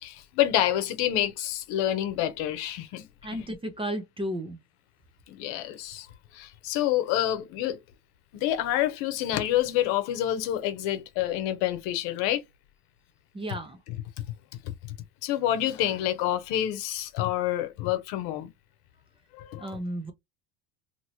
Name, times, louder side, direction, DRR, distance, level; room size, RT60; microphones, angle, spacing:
voice 1, 0.0-3.4 5.3-6.1 6.3-7.8 8.3-12.4 14.6-14.7 15.2-18.5 19.3-19.7, left 12 dB, 70° left, 0.9 m, -28 dB
voice 2, 3.2-4.6 13.3-13.8 19.6-20.1, equal, 15° right, 0.5 m, -33 dB
3.0 x 2.8 x 2.7 m
cardioid pair, 130°, 45 cm